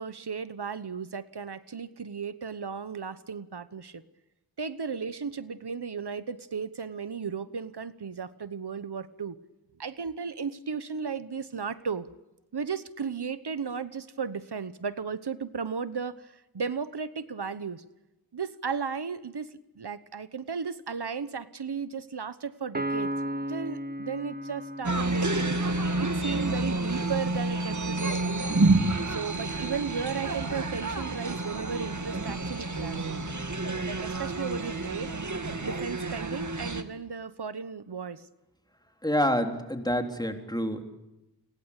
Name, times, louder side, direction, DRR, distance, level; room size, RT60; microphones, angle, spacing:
voice 1, 0.0-4.0 4.6-9.4 9.8-12.1 12.5-17.8 18.3-19.5 19.8-28.7 29.1-33.1 33.9-35.2 35.6-38.2, right 6 dB, 85° right, 14 dB, 1.1 m, -35 dB
Piano, 22.7-26.3, right 1 dB, 25° right, 1.7 m, -35 dB
sound 1, 24.8-36.8, right 2 dB, 50° right, 2.2 m, -29 dB
voice 2, 39.0-40.8, equal, 10° left, 5 dB, 3.7 m, -27 dB
29.5 x 23.0 x 8.3 m, 0.97 s
wide cardioid pair, 60°, 39 cm